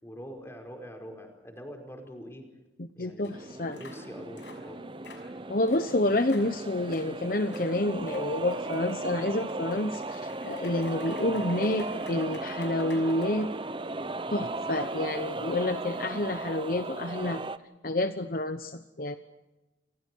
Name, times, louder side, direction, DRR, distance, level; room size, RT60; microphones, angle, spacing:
voice 1, 0.0-2.5 2.9-3.3 3.8-4.8 11.2-11.5 15.3-15.6, equal, 15° left, 3 dB, 5.0 m, -44 dB
voice 2, 3.0-3.8 5.5-13.5 14.3-17.4 17.8-19.2, left 1 dB, 50° left, 9 dB, 1.0 m, -29 dB
sound 1, 3.2-3.3 3.7-4.0 4.4-4.6 5.0-5.3 5.7-5.9 6.3-6.5 6.9-7.1 7.5-7.7 8.1-13.8, left 4 dB, 80° left, 6.1 m, -51 dB
sound 2, 3.3-17.6, right 2 dB, 25° right, 0.9 m, -36 dB
29.5 x 26.5 x 4.7 m, 1.0 s
head